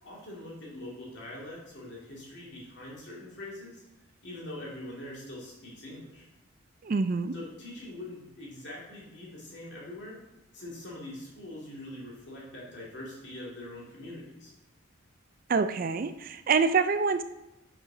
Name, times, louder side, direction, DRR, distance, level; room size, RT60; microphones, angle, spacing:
voice 1, 0.0-3.8 4.2-6.3 7.3-10.2 10.5-14.5, left 1 dB, 55° left, -4 dB, 2.6 m, -43 dB
voice 2, 6.8-7.3 15.5-17.2, right 5 dB, 40° right, 11 dB, 0.3 m, -26 dB
6.6 x 6.1 x 4.9 m, 0.94 s
head